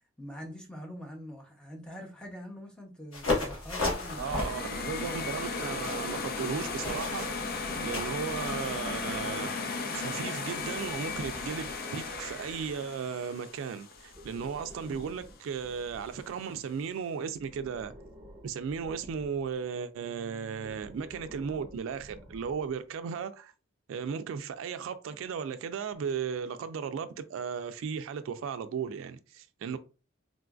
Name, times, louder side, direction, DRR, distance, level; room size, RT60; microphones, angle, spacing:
voice 1, 0.2-4.5, equal, 5° left, 0.7 m, -44 dB
sound 1, 3.1-8.6, left 2 dB, 75° left, 1.2 m, -35 dB
sound 2, 3.8-14.8, left 4 dB, 50° left, 0.4 m, -36 dB
voice 2, 4.2-9.5 9.9-17.9 18.4-23.5 23.9-29.8, right 6 dB, 75° right, 0.3 m, -36 dB
Breathing, 7.3-9.7 10.5-12.8 13.9-16.8 17.4-19.6 20.5-22.8, equal, 20° right, 1.1 m, -51 dB
3.8 x 2.4 x 2.3 m
head